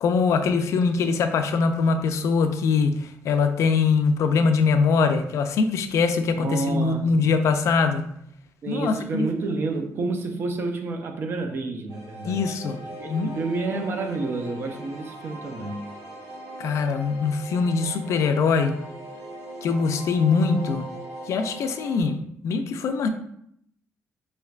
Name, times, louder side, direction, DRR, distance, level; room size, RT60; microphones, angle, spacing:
voice 1, 0.0-8.0 8.7-9.3 12.3-12.8 13.1-13.4 16.6-18.8 19.6-20.9 21.3-23.1, left 5 dB, 60° left, 7 dB, 0.4 m, -22 dB
voice 2, 6.4-7.3 8.6-12.6 13.0-15.8, right 3 dB, 40° right, 5 dB, 0.5 m, -29 dB
sound 1, 11.9-22.0, right 1 dB, 85° right, 1.3 m, -39 dB
5.1 x 3.3 x 2.4 m, 0.71 s
cardioid pair, 160°, 6 cm